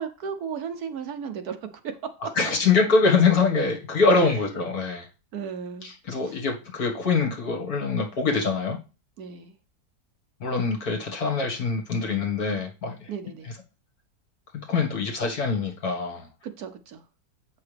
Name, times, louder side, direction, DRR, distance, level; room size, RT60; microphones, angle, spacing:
voice 1, 0.0-2.3 4.2-4.4 5.3-5.9 6.2-6.3 9.2-9.5 13.1-13.5 16.4-17.0, right 7 dB, 65° right, 1.2 m, -35 dB
voice 2, 2.4-5.1 5.8-8.8 10.4-13.1 14.7-16.3, left 4 dB, 60° left, 2.2 m, -24 dB
8.2 x 5.8 x 3.4 m
omnidirectional pair, 1.9 m